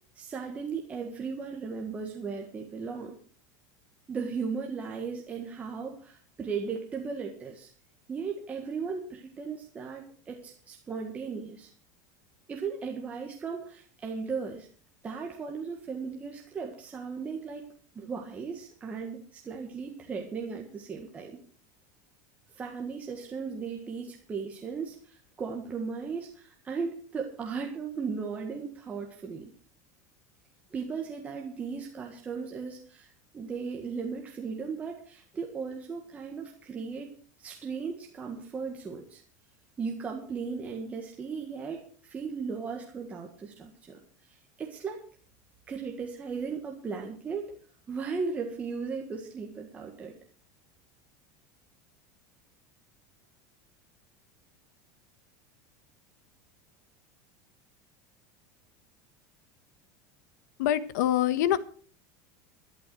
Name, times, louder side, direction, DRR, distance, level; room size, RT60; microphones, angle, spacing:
voice 1, 0.2-3.2 4.1-7.7 8.1-11.7 12.5-14.7 15.0-17.7 18.0-21.4 22.5-29.5 30.7-37.1 37.4-39.2 39.8-44.0 44.3-45.0 45.7-47.5 47.9-50.1, right 5 dB, 15° right, 1 dB, 1.6 m, -36 dB
voice 2, 60.6-61.6, left 12 dB, 80° left, 14 dB, 1.3 m, -25 dB
13.0 x 11.5 x 6.2 m, 0.44 s
supercardioid pair, 175°, 9 cm